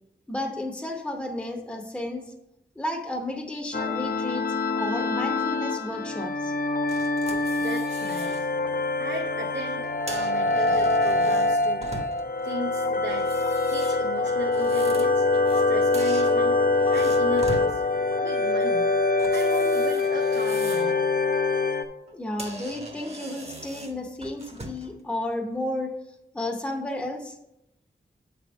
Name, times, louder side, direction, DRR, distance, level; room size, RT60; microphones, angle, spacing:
voice 1, 0.3-2.3 2.8-4.5 4.7-6.5 22.1-25.9 26.3-27.4, left 1 dB, 5° left, 2 dB, 0.7 m, -32 dB
sound 1, 3.7-21.8, left 3 dB, 55° left, 0.6 m, -24 dB
sound 2, 6.9-8.4 8.9-9.1 9.9-12.4 13.1-15.7 15.9-17.7 19.2-21.0 21.4-21.6 22.1-22.2 22.4-24.9, right 1 dB, 35° right, 0.9 m, -41 dB
voice 2, 7.6-8.5 9.0-11.9 12.4-13.3 13.7-15.3 15.5-16.6 16.9-17.8 18.2-18.9 19.3-21.0, right 2 dB, 85° right, 0 dB, 0.7 m, -36 dB
8.6 x 3.5 x 6.0 m, 0.89 s
wide cardioid pair, 90°, 18 cm